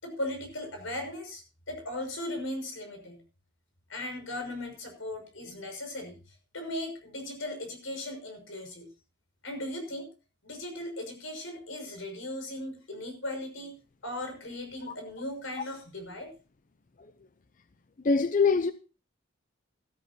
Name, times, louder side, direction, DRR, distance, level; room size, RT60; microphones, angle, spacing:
voice 1, 0.0-3.2 3.9-8.9 9.4-10.1 10.4-13.7 14.0-16.3, left 1 dB, 85° left, 6.1 m, -38 dB
voice 2, 18.0-18.7, left 4 dB, 40° left, 0.6 m, -23 dB
17.0 x 13.5 x 2.8 m
head